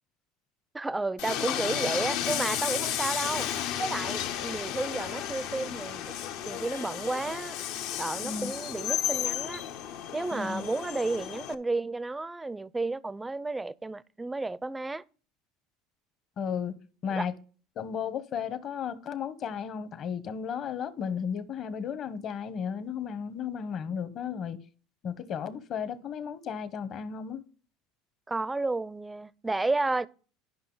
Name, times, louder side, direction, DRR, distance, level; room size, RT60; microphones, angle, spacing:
voice 1, 0.7-3.5 3.8-6.1 6.5-7.6 8.0-9.6 10.1-15.0 17.1-17.3 28.3-30.1, right 2 dB, 10° right, 0.4 m, -32 dB
Train, 1.2-11.5, left 10 dB, 70° left, 0.7 m, -33 dB
voice 2, 10.3-10.7 16.4-16.7 17.0-17.3 17.8-24.6 25.0-27.4, left 7 dB, 50° left, 1.0 m, -34 dB
11.0 x 5.5 x 3.9 m
supercardioid pair, 100°, 0 cm